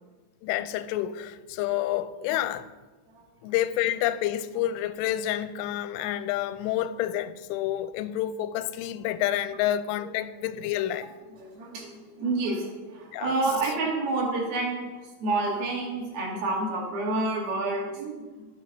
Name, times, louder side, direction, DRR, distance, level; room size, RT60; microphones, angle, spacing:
voice 1, 0.4-2.7 3.4-11.1 13.1-13.3, left 12 dB, 90° left, 3.1 m, -29 dB
voice 2, 11.4-11.9 12.2-14.9 15.2-18.5, right 2 dB, 60° right, 3.8 m, -29 dB
12.5 x 9.4 x 5.9 m
omnidirectional pair, 5.4 m